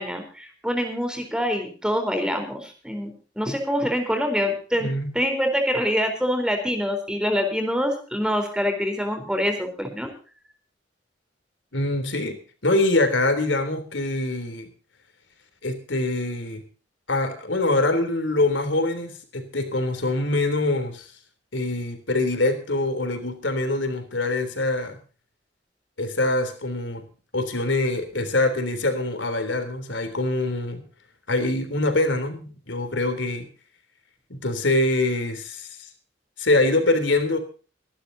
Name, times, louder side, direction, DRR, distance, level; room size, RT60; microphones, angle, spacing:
voice 1, 0.0-4.9 5.1-10.1 28.1-28.2, equal, 5° right, 5 dB, 4.2 m, -25 dB
voice 2, 4.8-5.1 11.7-14.7 15.6-16.6 17.1-21.1 21.5-25.0 26.0-27.0 27.3-30.8 31.3-33.5 34.3-35.8 36.4-37.4, left 2 dB, 90° left, 8 dB, 3.5 m, -24 dB
25.5 x 11.5 x 2.8 m, 0.38 s
head